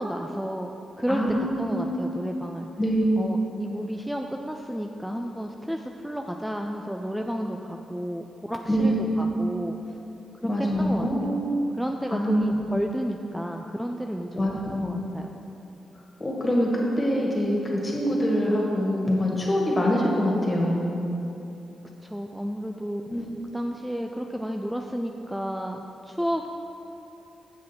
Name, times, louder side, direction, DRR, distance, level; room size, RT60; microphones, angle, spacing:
voice 1, 0.0-2.7 3.2-8.9 9.2-9.8 10.4-10.5 10.8-11.4 11.8-15.3 22.0-23.3 23.5-26.5, equal, 5° right, 3 dB, 0.4 m, -32 dB
voice 2, 1.1-2.0 2.8-3.3 8.7-9.4 10.4-11.6 12.1-12.6 14.3-15.0 16.2-21.0 23.1-23.4, equal, 30° left, -3 dB, 1.9 m, -25 dB
7.5 x 6.2 x 4.5 m, 2.9 s
cardioid pair, 70°, 0 cm